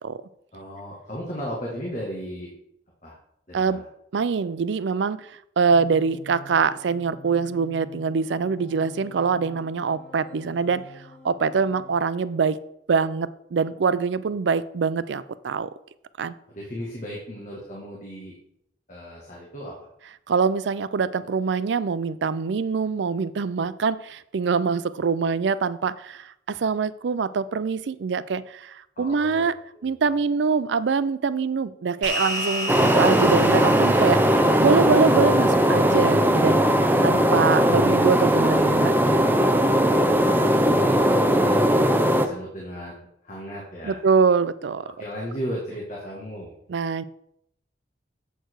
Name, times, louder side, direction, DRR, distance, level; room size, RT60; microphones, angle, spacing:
voice 1, 0.5-2.5 3.0-3.2 3.5-3.8 16.5-18.3 18.9-19.7 29.0-29.5 29.7-30.0 40.1-41.9 42.2-42.9 43.2-44.0 45.0-46.6, equal, 45° left, -4 dB, 1.9 m, -35 dB
voice 2, 4.1-10.8 11.2-12.6 12.9-15.7 16.2-16.3 20.3-29.6 29.8-36.6 37.0-39.0 39.4-39.6 43.8-44.9 46.7-47.0, right 5 dB, 80° right, 16 dB, 0.4 m, -24 dB
sound 1, 5.7-12.0, left 1 dB, 10° left, 3.3 m, -47 dB
sound 2, 32.0-36.7, equal, 45° right, 2.9 m, -33 dB
sound 3, 32.7-42.3, equal, 10° right, 0.5 m, -19 dB
7.9 x 6.6 x 4.7 m, 0.75 s
head